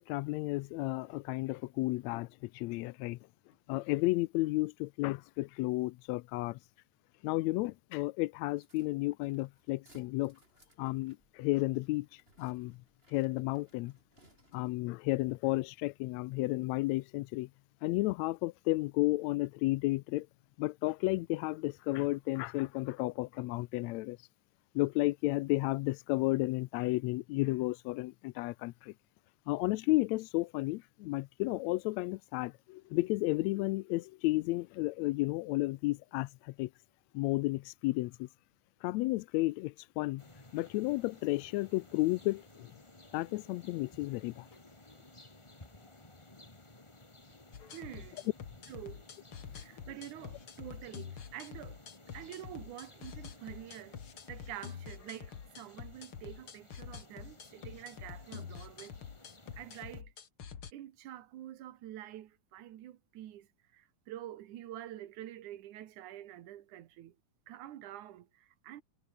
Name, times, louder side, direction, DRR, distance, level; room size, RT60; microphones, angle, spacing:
voice 1, 0.0-3.2 3.7-6.6 7.2-10.4 10.8-12.8 13.1-13.9 14.5-17.5 17.8-20.3 20.6-24.2 24.7-28.9 29.5-36.7 37.1-38.3 38.8-40.2 40.5-42.7 43.1-44.5, left 20 dB, 80° left, 1.6 m, -32 dB
sound 1, 8.5-14.9, right 1 dB, 15° right, 5.7 m, -66 dB
sound 2, 40.2-60.0, left 2 dB, 10° left, 1.5 m, -57 dB
sound 3, 47.5-60.7, left 7 dB, 45° left, 2.5 m, -47 dB
voice 2, 47.7-48.3 48.7-49.1 49.5-51.8 52.1-58.9 59.6-60.1 60.7-67.2 67.5-68.8, right 12 dB, 75° right, 2.8 m, -47 dB
omnidirectional pair, 3.6 m